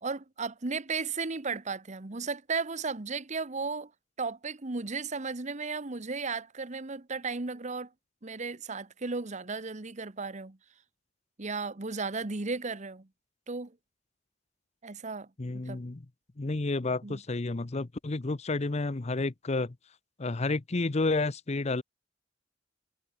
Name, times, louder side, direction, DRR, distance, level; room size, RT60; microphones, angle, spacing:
voice 1, 0.0-3.9 4.2-7.9 8.2-10.6 11.4-13.1 13.5-13.7 14.8-15.3 15.7-15.8 17.0-17.2, right 4 dB, 40° right, 1.1 m, -35 dB
voice 2, 15.4-16.0 16.4-19.8 20.2-21.8, left 3 dB, 35° left, 0.7 m, -30 dB
head